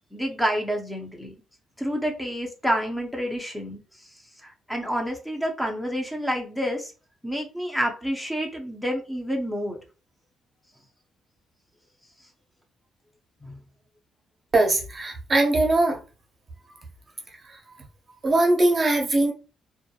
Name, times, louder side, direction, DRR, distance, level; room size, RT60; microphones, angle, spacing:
voice 1, 0.1-1.3 1.8-3.8 4.4-6.9 7.2-9.8 13.4-13.6, equal, 5° left, 0.6 m, -28 dB
voice 2, 14.5-16.0 18.2-19.3, right 2 dB, 35° right, 0.6 m, -21 dB
2.3 x 2.0 x 2.8 m
cardioid pair, 90°, 0 cm